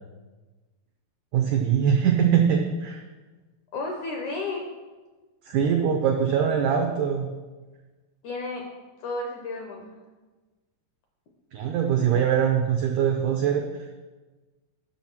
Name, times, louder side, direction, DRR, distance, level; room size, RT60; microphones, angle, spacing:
voice 1, 1.3-3.0 5.4-7.3 11.5-13.9, right 8 dB, 85° right, 3 dB, 1.7 m, -23 dB
voice 2, 3.7-4.7 8.2-8.6 9.0-9.9, left 2 dB, 70° left, 2 dB, 1.8 m, -32 dB
10.0 x 6.3 x 6.0 m, 1.3 s
omnidirectional pair, 4.6 m